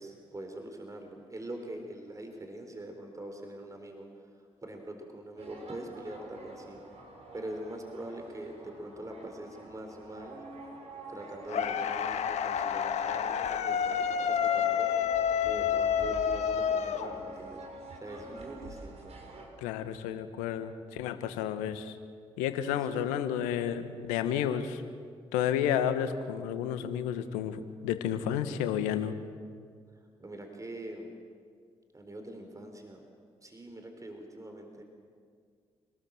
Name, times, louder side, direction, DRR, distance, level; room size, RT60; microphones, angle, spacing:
voice 1, 0.0-4.1 4.6-6.8 7.3-10.4 11.1-15.1 15.4-17.6 18.0-19.2 22.7-23.0 30.2-31.1 31.9-33.0 33.4-34.8, right 1 dB, 25° right, 4 dB, 4.2 m, -43 dB
sound 1, 5.4-19.5, right 2 dB, 55° right, 5.8 m, -46 dB
sound 2, 11.5-17.6, left 8 dB, 65° left, 1.3 m, -29 dB
voice 2, 19.6-21.9 22.4-24.8 25.3-29.1, left 9 dB, 80° left, 10 dB, 1.3 m, -31 dB
28.5 x 19.0 x 7.5 m, 2.1 s
hypercardioid pair, 40°, 13 cm